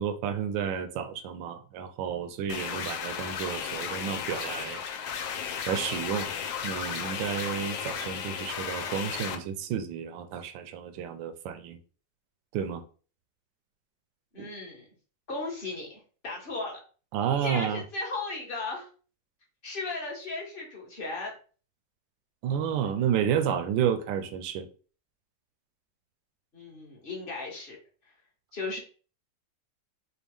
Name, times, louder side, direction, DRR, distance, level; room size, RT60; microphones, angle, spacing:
voice 1, 0.0-4.8 5.7-6.3 6.6-11.8 12.5-12.8 14.4-14.5 17.1-17.8 22.4-24.7, right 8 dB, 85° right, 1.3 m, -31 dB
sound 1, 2.5-9.4, left 7 dB, 85° left, 1.4 m, -34 dB
voice 2, 14.3-14.8 15.3-16.8 17.4-18.9 19.6-21.3 26.5-27.8 28.5-28.8, left 3 dB, 35° left, 1.1 m, -36 dB
4.2 x 2.3 x 3.4 m
omnidirectional pair, 2.0 m